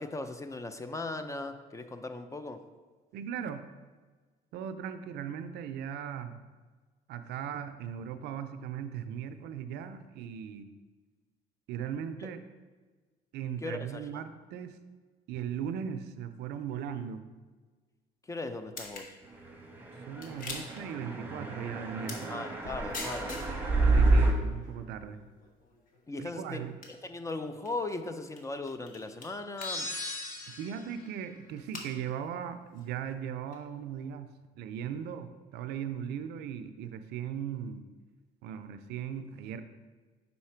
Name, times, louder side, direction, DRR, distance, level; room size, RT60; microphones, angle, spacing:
voice 1, 0.0-2.6 13.6-14.1 18.2-19.2 22.3-23.4 26.1-26.7 27.0-29.9, left 2 dB, 20° left, 9 dB, 0.4 m, -38 dB
voice 2, 3.1-3.6 4.5-6.4 7.1-10.7 11.7-12.4 13.3-14.8 15.3-17.2 20.1-22.4 23.9-25.2 26.2-26.7 30.5-37.8 38.4-39.6, right 8 dB, 80° right, 10 dB, 0.5 m, -38 dB
sound 1, 18.8-19.1 20.2-20.8 22.0-22.3 22.6-27.7 28.4-28.5 28.7-29.3 29.6-29.9 30.2-30.3 30.9-31.1 31.6-31.9 32.8-32.9 33.5-33.6, left 3 dB, 55° left, 1.2 m, -44 dB
sound 2, 19.9-24.3, right 2 dB, 10° right, 0.9 m, -28 dB
sound 3, 29.6-31.0, left 2 dB, 80° left, 1.8 m, -38 dB
5.6 x 4.1 x 4.4 m, 1.4 s
cardioid pair, 110°, 17 cm